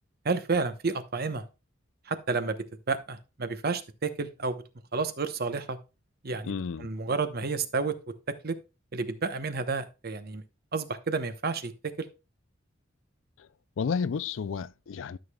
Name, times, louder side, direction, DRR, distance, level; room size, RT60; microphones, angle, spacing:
voice 1, 0.2-1.4 2.1-2.6 2.9-4.6 4.9-5.8 6.2-6.5 6.8-8.1 8.4-8.5 8.9-10.4 10.7-12.1, right 4 dB, 55° right, 0.9 m, -30 dB
voice 2, 6.4-6.9 13.8-15.2, left 6 dB, 75° left, 0.4 m, -31 dB
13.0 x 6.4 x 2.3 m
head